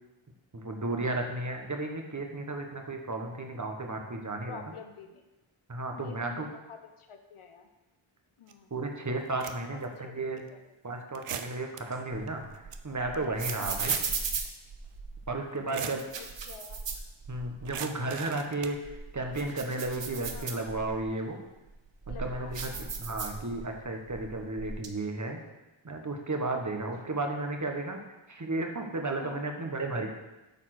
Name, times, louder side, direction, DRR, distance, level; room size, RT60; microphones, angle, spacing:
voice 1, 0.5-4.6 5.7-6.5 8.7-10.4 10.8-12.4 12.8-14.0 15.3-16.0 17.3-21.4 22.1-25.4 25.8-28.0 28.3-30.1, right 2 dB, 35° right, 3 dB, 1.4 m, -33 dB
voice 2, 4.5-5.2 5.9-7.7 8.4-8.7 9.6-10.6 13.6-13.9 15.7-16.8 20.3-20.5 22.1-23.1 27.1-27.2 29.2-29.4, left 6 dB, 80° left, 6 dB, 1.0 m, -49 dB
sound 1, 8.5-8.6 9.2-9.8 10.4-10.5 11.1-11.8 12.3-12.4 12.5-12.8 13.1-14.2 14.4-14.5 15.5-16.0 17.6-18.8, right 8 dB, 90° right, 0.7 m, -39 dB
sound 2, 11.9-15.3 15.9-17.7 18.1-18.2 18.7-21.1 21.6-23.8 24.1-24.9, right 5 dB, 60° right, 1.0 m, -37 dB
8.9 x 4.5 x 6.0 m, 1.0 s
cardioid pair, 60°, 49 cm